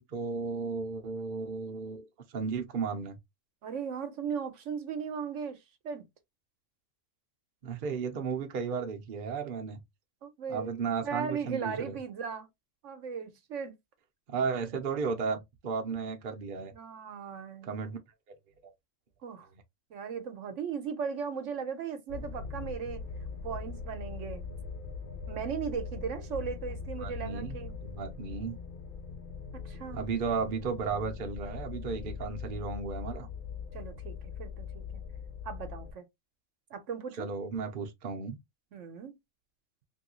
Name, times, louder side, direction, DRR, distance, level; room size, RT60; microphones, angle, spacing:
voice 1, 0.0-2.0 2.3-3.2 7.6-9.8 10.5-12.0 14.3-16.7 17.6-18.0 27.0-27.5 27.8-28.6 29.9-33.3 37.2-38.4, right 5 dB, 50° right, 0.7 m, -34 dB
voice 2, 3.6-5.6 5.8-6.1 10.2-12.5 12.8-13.7 16.7-17.7 19.2-19.5 19.9-23.0 23.4-24.5 25.3-27.8 29.6-30.0 33.7-35.0 35.4-36.1 36.7-37.3 38.7-39.2, right 6 dB, 70° right, 1.0 m, -37 dB
sound 1, 22.1-35.9, left 5 dB, 65° left, 0.5 m, -41 dB
3.0 x 2.7 x 2.9 m
omnidirectional pair, 1.4 m